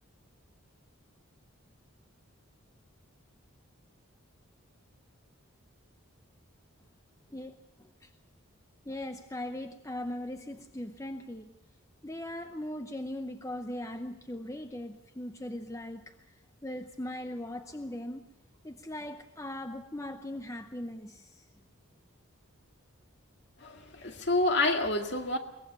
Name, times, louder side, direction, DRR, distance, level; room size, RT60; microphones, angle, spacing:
voice 1, 7.3-8.1 8.9-11.6 12.0-16.2 16.6-18.2 18.6-21.5, left 1 dB, 15° left, 7 dB, 0.7 m, -39 dB
voice 2, 23.6-25.4, left 2 dB, 50° left, 4 dB, 2.2 m, -28 dB
23.0 x 19.0 x 6.9 m, 0.89 s
head